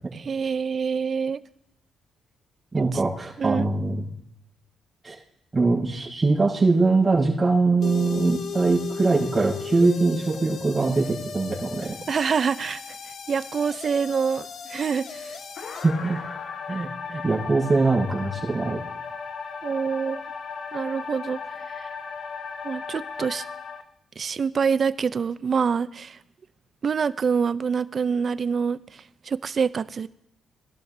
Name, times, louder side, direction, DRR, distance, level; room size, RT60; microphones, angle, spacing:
voice 1, 0.1-1.4 2.7-3.0 3.4-3.7 12.1-12.8 13.3-15.4 19.6-20.2 20.7-21.4 21.8-21.9 22.6-23.4 24.2-26.2 26.8-28.8 29.3-30.1, right 6 dB, 45° right, 16 dB, 0.5 m, -26 dB
voice 2, 2.7-4.1 5.0-5.1 5.5-11.9 15.8-16.2 16.7-18.8, right 3 dB, 20° right, -5 dB, 5.1 m, -22 dB
sound 1, 7.8-23.8, left 6 dB, 60° left, 1.1 m, -36 dB
20.0 x 12.0 x 2.7 m, 0.78 s
cardioid pair, 90°, 0 cm